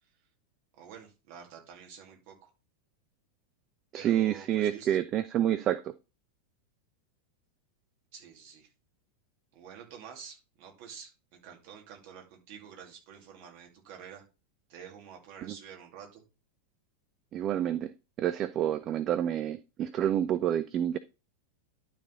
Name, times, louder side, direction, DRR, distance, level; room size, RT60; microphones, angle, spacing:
voice 1, 0.8-2.5 3.9-5.0 8.1-8.7 9.5-14.2 14.7-16.2, right 7 dB, 45° right, 2.6 m, -48 dB
voice 2, 3.9-5.9 15.5-15.6 17.3-17.9 18.2-21.0, right 11 dB, 30° right, 0.4 m, -28 dB
12.0 x 4.1 x 4.0 m
figure-of-eight pair, 90°, 0 cm